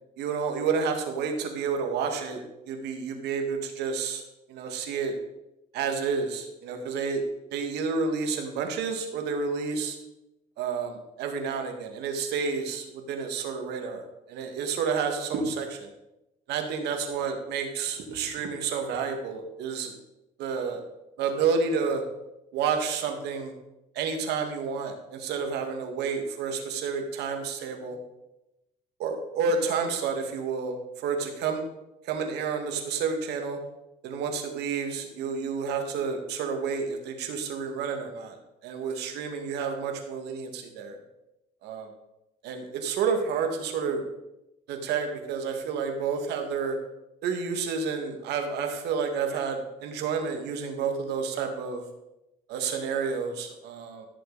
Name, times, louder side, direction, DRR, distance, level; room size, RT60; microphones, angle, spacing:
voice 1, 0.2-4.2 4.5-5.1 5.7-7.2 7.5-10.0 10.6-15.9 16.5-19.9 20.4-20.8 21.2-22.0 22.5-23.5 23.9-28.0 29.0-31.6 32.0-33.6 34.0-41.0 41.6-41.9 42.4-44.1 44.7-46.8 47.2-51.8 52.5-54.1, right 5 dB, 80° right, 5 dB, 1.9 m, -30 dB
16.0 x 6.7 x 4.0 m, 0.91 s
cardioid pair, 110°, 17 cm